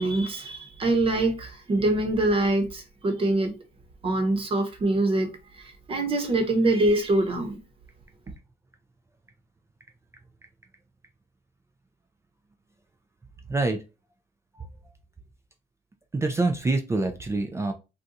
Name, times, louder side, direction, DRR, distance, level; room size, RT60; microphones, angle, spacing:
voice 1, 0.0-3.5 4.0-7.6, right 2 dB, 30° right, 1.0 m, -24 dB
voice 2, 16.1-17.7, right 2 dB, 15° right, 0.4 m, -25 dB
2.5 x 2.3 x 4.0 m
cardioid pair, 110°, 17 cm